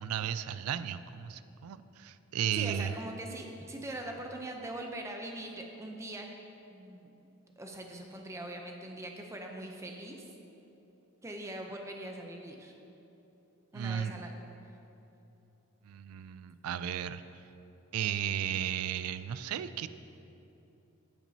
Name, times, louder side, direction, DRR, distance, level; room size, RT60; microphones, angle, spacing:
voice 1, 0.0-2.9 13.7-14.1 15.8-17.2 17.9-19.9, right 9 dB, 90° right, 13 dB, 0.3 m, -34 dB
voice 2, 2.5-6.3 6.7-7.1 7.6-10.2 11.2-12.7 13.7-14.3, right 1 dB, 15° right, 2 dB, 0.5 m, -42 dB
15.0 x 6.0 x 2.7 m, 3.0 s
head